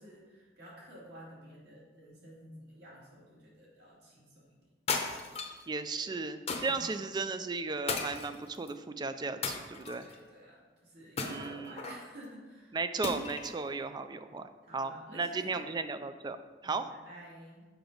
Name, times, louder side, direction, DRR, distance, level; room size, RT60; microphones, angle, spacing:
voice 1, 0.0-4.6 6.0-6.2 6.6-6.9 9.9-12.8 14.6-15.8 16.6-17.7, equal, 65° right, -6 dB, 2.3 m, -51 dB
sound 1, 4.9-5.6 6.5-6.9 7.9-8.7 9.4-10.2 11.2-12.0 13.0-13.6, left 4 dB, 35° left, 0.7 m, -35 dB
voice 2, 5.7-10.1 11.2-11.8 12.7-16.4 16.6-16.9, right 4 dB, 25° right, 10 dB, 0.3 m, -35 dB
6.9 x 5.7 x 3.8 m, 1.4 s
head